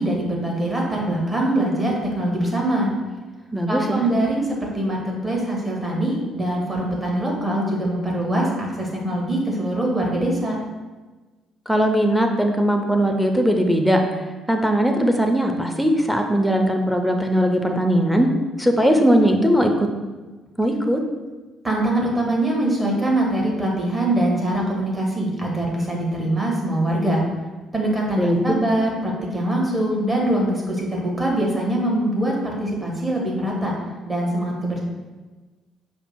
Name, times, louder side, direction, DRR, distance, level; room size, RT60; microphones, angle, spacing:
voice 1, 0.0-2.9 3.7-10.5 21.6-27.2 27.7-33.7 34.1-34.8, right 1 dB, 15° right, -2 dB, 1.3 m, -23 dB
voice 2, 3.5-4.0 11.7-14.0 14.5-18.3 18.6-19.9 20.6-21.0 28.2-28.5, equal, ahead, 4 dB, 0.6 m, -19 dB
5.0 x 2.1 x 4.6 m, 1.3 s
figure-of-eight pair, 45°, 0 cm